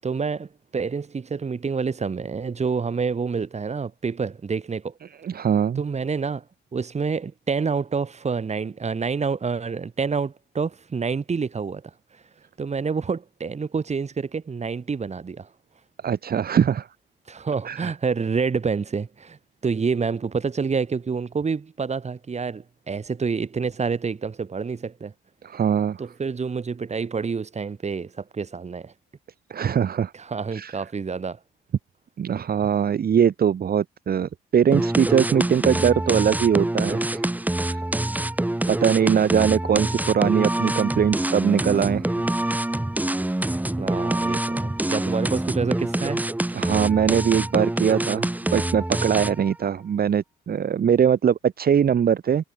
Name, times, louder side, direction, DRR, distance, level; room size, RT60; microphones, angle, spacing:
voice 1, 0.0-4.9 5.7-6.4 6.7-11.8 12.6-15.5 17.3-25.1 26.0-28.9 30.1-31.4 39.0-39.4 43.8-46.2, right 5 dB, 35° right, 3.1 m, -28 dB
voice 2, 5.2-5.8 16.0-16.9 17.6-17.9 25.4-26.0 29.5-30.1 30.5-30.8 32.2-37.3 37.6-37.8 38.7-42.1 46.5-52.4, right 8 dB, 50° right, 1.9 m, -21 dB
sound 1, 34.7-49.5, right 1 dB, 10° right, 2.0 m, -26 dB
cardioid pair, 90°, 20 cm